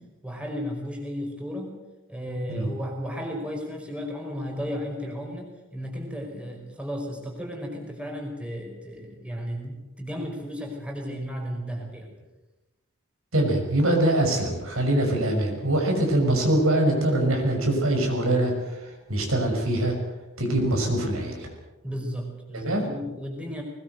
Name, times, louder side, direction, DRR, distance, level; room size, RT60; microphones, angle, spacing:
voice 1, 0.2-1.8 2.1-12.1 21.8-23.6, equal, 5° right, 1 dB, 5.1 m, -34 dB
voice 2, 13.3-18.5 19.1-20.0 20.4-21.5 22.6-22.9, right 1 dB, 70° right, 2 dB, 6.1 m, -23 dB
20.5 x 20.5 x 8.0 m, 1.1 s
head